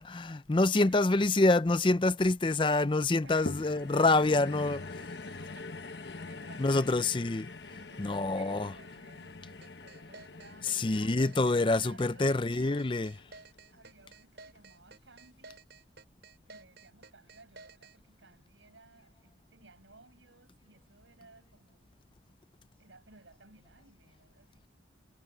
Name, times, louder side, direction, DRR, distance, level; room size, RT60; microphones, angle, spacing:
voice 1, 0.0-4.8 6.6-7.5 8.0-8.7 10.6-13.1, left 2 dB, 25° left, 0.5 m, -26 dB
voice 2, 0.8-1.1 3.2-4.2 4.6-7.2 7.7-13.1 13.7-15.6 16.5-21.9 22.8-24.7, right 3 dB, 85° right, 7.5 m, -58 dB
sound 1, 3.5-13.9 14.6-14.7, left 3 dB, 65° left, 1.3 m, -44 dB
sound 2, 9.6-18.0, right 3 dB, 65° right, 5.3 m, -52 dB
head